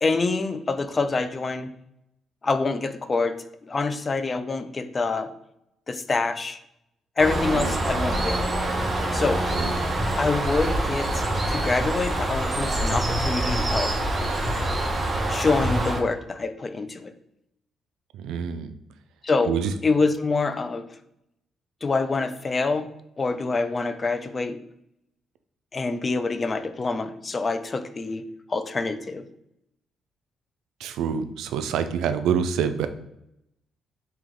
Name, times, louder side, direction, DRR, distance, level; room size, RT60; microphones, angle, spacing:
voice 1, 0.0-1.7 2.4-5.3 5.9-6.6 7.2-8.4 9.1-9.4 10.2-14.0 15.3-17.1 19.2-19.5 19.8-20.8 21.8-22.9 23.2-24.6 25.7-28.2 28.5-29.2, left 3 dB, 30° left, 10 dB, 0.4 m, -26 dB
Bird, 7.2-16.0, right 1 dB, 25° right, 0.7 m, -25 dB
voice 2, 7.5-7.8 9.5-9.8 18.1-18.8 19.4-19.7 30.8-32.9, right 7 dB, 85° right, 9 dB, 0.3 m, -27 dB
3.5 x 2.9 x 3.6 m, 0.82 s
cardioid pair, 90°, 0 cm